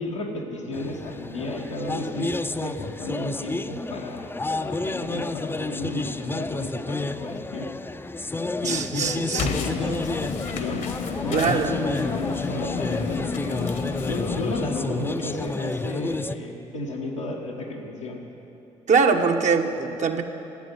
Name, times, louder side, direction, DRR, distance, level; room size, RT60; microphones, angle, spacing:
voice 1, 0.0-2.3 2.6-4.3 4.6-7.8 8.6-10.9 11.2-13.7 14.0-18.2, left 2 dB, 90° left, -3 dB, 1.4 m, -33 dB
sound 1, 0.7-16.4, left 2 dB, 15° left, 0.6 m, -30 dB
voice 2, 8.6-9.5 11.3-11.8 18.9-20.2, right 5 dB, 50° right, 4 dB, 1.1 m, -22 dB
sound 2, 9.4-15.1, left 6 dB, 60° left, 1.2 m, -31 dB
12.5 x 8.6 x 9.6 m, 3.0 s
figure-of-eight pair, 40°, 16 cm